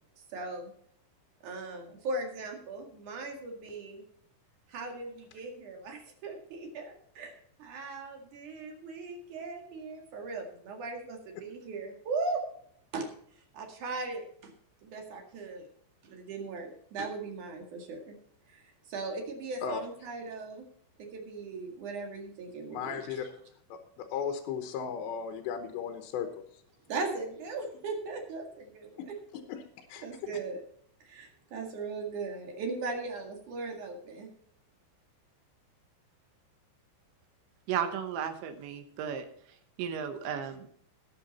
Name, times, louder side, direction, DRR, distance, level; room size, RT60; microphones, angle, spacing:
voice 1, 0.3-0.7 1.4-4.0 4.7-7.3 7.6-12.4 12.9-13.1 13.5-14.5 14.8-15.7 16.1-18.1 18.5-18.6 18.9-20.6 21.0-23.0 26.9-29.0 30.0-30.6 31.0-34.3, right 3 dB, 50° right, 2 dB, 2.7 m, -38 dB
voice 2, 22.7-23.3 23.7-26.6 29.0-29.1 29.5-30.1, left 7 dB, 75° left, 6 dB, 2.9 m, -36 dB
voice 3, 37.7-39.3 39.8-40.7, right 8 dB, 75° right, 7 dB, 3.1 m, -34 dB
19.5 x 6.9 x 4.2 m, 0.64 s
omnidirectional pair, 5.8 m